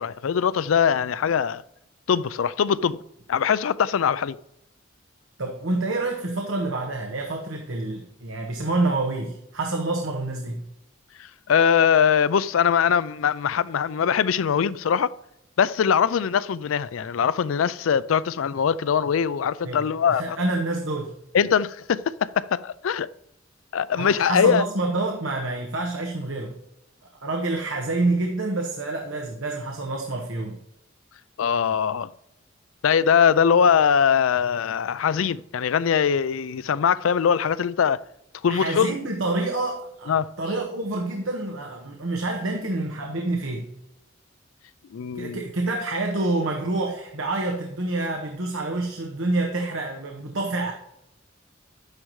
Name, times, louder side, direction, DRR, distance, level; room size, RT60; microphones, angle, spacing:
voice 1, 0.0-1.6 2.1-3.0 3.3-4.4 11.2-15.1 15.6-20.4 21.3-23.1 23.7-24.7 31.4-32.1 32.8-38.0 38.4-38.9 40.1-40.3 44.9-45.4, left 7 dB, 85° left, 0.4 m, -22 dB
voice 2, 5.4-10.6 19.6-21.1 24.0-26.5 27.2-30.6 38.5-43.7 45.1-50.7, right 2 dB, 85° right, 1.2 m, -27 dB
12.0 x 9.7 x 3.2 m
head